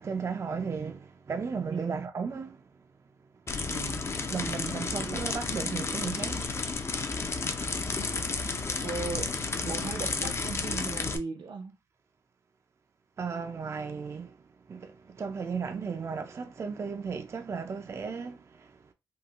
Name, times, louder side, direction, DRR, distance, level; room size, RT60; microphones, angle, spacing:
voice 1, 0.0-2.7 4.3-6.5 13.2-18.9, right 5 dB, 35° right, 0.3 m, -35 dB
voice 2, 1.7-2.0 3.7-4.3 4.9-5.3 8.8-11.7, right 4 dB, 75° right, 0.7 m, -38 dB
sound 1, 3.5-11.2, left 4 dB, 35° left, 0.4 m, -32 dB
3.6 x 2.3 x 2.4 m
wide cardioid pair, 130°, 8 cm